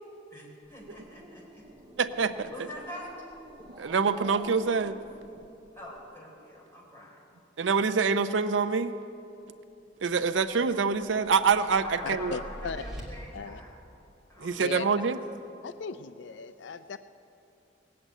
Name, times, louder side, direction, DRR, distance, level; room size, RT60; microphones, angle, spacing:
voice 1, 0.3-1.6 2.5-3.1 5.7-7.2 11.8-13.7 14.3-15.2, left 1 dB, 15° left, -4 dB, 4.0 m, -44 dB
Growling, 0.6-6.0, right 1 dB, 25° right, 0.9 m, -50 dB
voice 2, 2.0-2.5 3.8-5.0 7.6-8.9 10.0-12.4 14.4-15.2, right 5 dB, 80° right, 11 dB, 0.5 m, -26 dB
sound 1, 10.5-13.0, equal, 5° right, 2.6 m, -45 dB
voice 3, 12.0-12.8 13.3-13.6 14.5-14.9 15.6-17.0, left 5 dB, 70° left, 11 dB, 0.4 m, -37 dB
18.5 x 7.8 x 9.0 m, 2.8 s
head